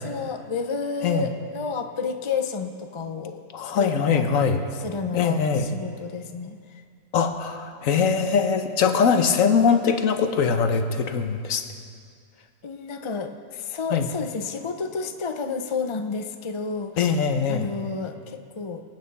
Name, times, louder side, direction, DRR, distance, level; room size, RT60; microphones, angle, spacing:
voice 1, 0.0-4.4 4.8-6.8 12.6-17.2 17.5-18.8, left 5 dB, 45° left, 6 dB, 0.3 m, -31 dB
voice 2, 3.5-4.6 5.1-5.7 7.1-11.7 13.9-14.0 17.0-17.7, left 6 dB, 65° left, 7 dB, 1.2 m, -22 dB
25.0 x 8.8 x 4.1 m, 2.2 s
omnidirectional pair, 1.6 m